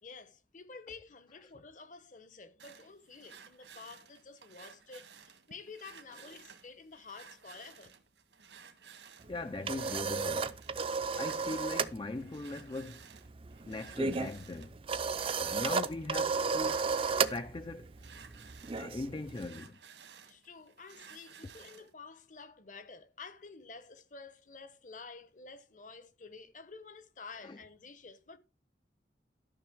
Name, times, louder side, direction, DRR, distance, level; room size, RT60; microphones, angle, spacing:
voice 1, 0.0-8.0 20.3-28.4, left 4 dB, 45° left, 1.0 m, -50 dB
sound 1, 2.6-21.9, right 7 dB, 80° right, 1.6 m, -56 dB
voice 2, 9.3-10.5 11.1-13.0 13.6-14.7 15.4-16.9 17.3-17.9 18.7-19.8 27.4-27.6, left 2 dB, 25° left, 0.4 m, -40 dB
sound 2, 9.3-12.0 12.2-12.5 12.8-19.5, right 4 dB, 30° right, 0.5 m, -33 dB
12.5 x 6.1 x 4.6 m
head